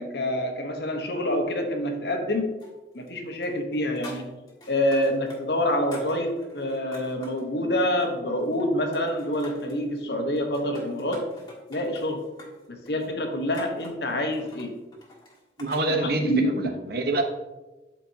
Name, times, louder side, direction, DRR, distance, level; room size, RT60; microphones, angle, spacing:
voice 1, 0.0-2.5 2.9-4.3 4.7-11.3 11.7-12.3 12.7-14.8 16.0-16.9, left 1 dB, 65° left, 3 dB, 1.1 m, -27 dB
sound 1, 2.6-3.2 3.4-5.4 5.7-7.4 7.9-8.7 8.9-9.8 10.4-15.9, left 1 dB, 25° left, 1.6 m, -47 dB
voice 2, 15.6-16.3 16.6-17.2, right 2 dB, 60° right, 5 dB, 0.9 m, -26 dB
12.0 x 4.4 x 2.8 m, 1.1 s
head